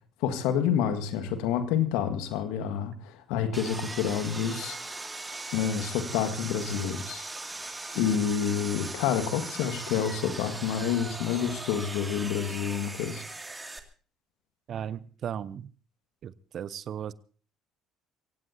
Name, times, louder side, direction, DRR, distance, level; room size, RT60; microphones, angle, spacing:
voice 1, 0.2-4.8 5.5-7.2 8.0-13.2, left 8 dB, 70° left, 9 dB, 1.8 m, -28 dB
Sawing, 3.5-13.8, right 2 dB, 15° right, 2.5 m, -39 dB
voice 2, 14.7-15.7 16.2-17.1, right 9 dB, 50° right, 19 dB, 0.7 m, -36 dB
24.5 x 17.0 x 2.8 m, 0.40 s
hypercardioid pair, 55°, 0 cm